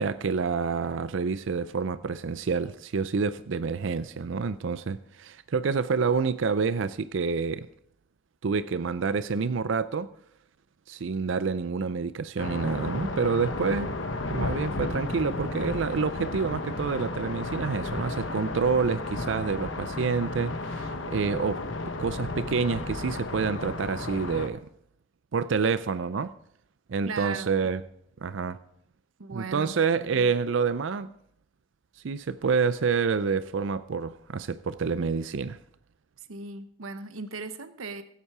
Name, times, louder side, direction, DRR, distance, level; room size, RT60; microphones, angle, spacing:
voice 1, 0.0-7.7 8.4-10.1 10.9-13.9 14.3-21.7 22.0-24.7 25.3-26.3 26.9-27.8 28.2-28.6 29.3-31.1 32.0-35.6, right 5 dB, 70° right, 0.5 m, -28 dB
sound 1, 12.4-24.5, left 2 dB, 70° left, 1.1 m, -33 dB
voice 2, 27.0-27.5 29.2-29.8 36.3-38.0, right 4 dB, 90° right, 1.0 m, -37 dB
16.0 x 8.2 x 4.8 m
head